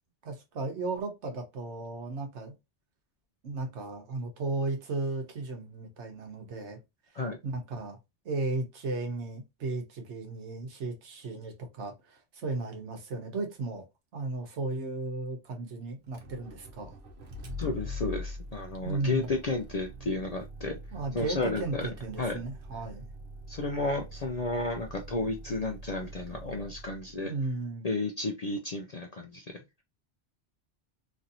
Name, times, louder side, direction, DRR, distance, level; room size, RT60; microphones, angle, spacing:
voice 1, 0.2-2.5 3.4-6.8 7.4-8.0 8.2-13.9 14.1-16.9 18.8-19.3 20.9-23.1 27.2-27.9, right 3 dB, 80° right, 1.1 m, -35 dB
Motor vehicle (road), 16.0-27.2, left 1 dB, 55° right, 0.8 m, -43 dB
voice 2, 17.6-20.8 21.1-21.9 22.2-22.4 23.5-27.3 27.8-29.5, left 2 dB, 55° left, 0.4 m, -32 dB
3.0 x 2.6 x 2.6 m
omnidirectional pair, 1.2 m